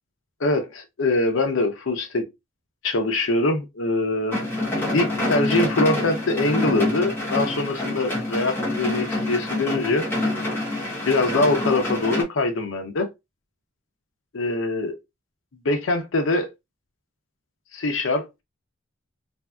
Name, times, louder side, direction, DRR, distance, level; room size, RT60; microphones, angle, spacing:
voice 1, 0.4-2.2 2.8-4.4 4.9-10.1 11.1-13.1 14.3-14.9 15.6-16.5 17.7-18.2, left 2 dB, 80° left, 0.6 m, -23 dB
sound 1, 4.3-12.2, left 1 dB, 10° left, 1.1 m, -26 dB
3.2 x 2.6 x 2.3 m
head